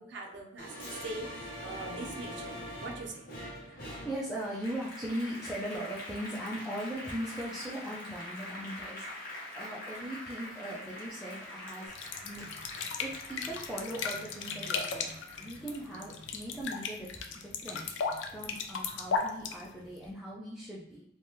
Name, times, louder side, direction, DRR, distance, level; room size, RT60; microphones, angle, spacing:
voice 1, 0.0-3.2, right 2 dB, 70° right, 1 dB, 0.4 m, -42 dB
Applause, 0.6-17.4 17.8-19.0, left 1 dB, 50° left, 0.8 m, -44 dB
voice 2, 3.6-11.9 12.2-12.5 13.0-21.0, right 1 dB, 5° right, -7 dB, 0.3 m, -39 dB
sound 1, 11.9-20.1, left 5 dB, 85° left, 0.4 m, -36 dB
3.2 x 2.2 x 2.7 m, 0.81 s
head